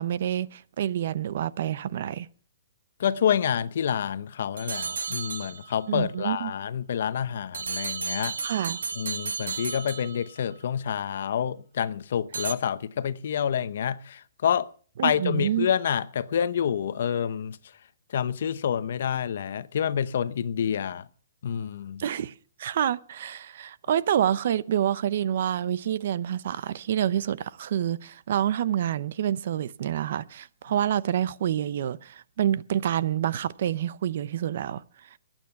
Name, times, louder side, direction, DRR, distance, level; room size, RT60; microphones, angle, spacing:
voice 1, 0.0-2.3 5.9-6.5 8.4-8.8 15.0-15.7 22.0-22.3 22.6-34.8, right 10 dB, 45° right, 0.6 m, -27 dB
voice 2, 3.0-8.4 9.0-14.7 15.0-17.6 18.1-21.0 21.4-22.0, left 8 dB, 55° left, 0.8 m, -28 dB
sound 1, 4.6-5.9 7.5-10.5 12.3-12.5, right 5 dB, 90° right, 1.4 m, -33 dB
22.0 x 9.1 x 5.8 m
hypercardioid pair, 170°, 0 cm